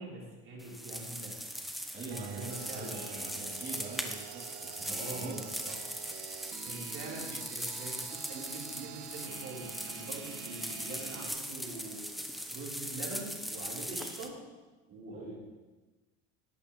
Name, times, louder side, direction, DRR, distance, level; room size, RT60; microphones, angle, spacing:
voice 1, 0.0-1.4 2.0-3.1 4.9-5.4 6.6-14.4 14.9-15.4, right 2 dB, 45° right, -4 dB, 4.1 m, -44 dB
sound 1, 0.6-14.3, equal, ahead, 1.0 m, -40 dB
voice 2, 1.9-5.7 15.1-15.4, right 3 dB, 30° right, -8 dB, 3.2 m, -44 dB
sound 2, 2.1-11.3, right 16 dB, 80° right, 0.5 m, -47 dB
17.5 x 8.4 x 3.2 m, 1.2 s
supercardioid pair, 110°, 30 cm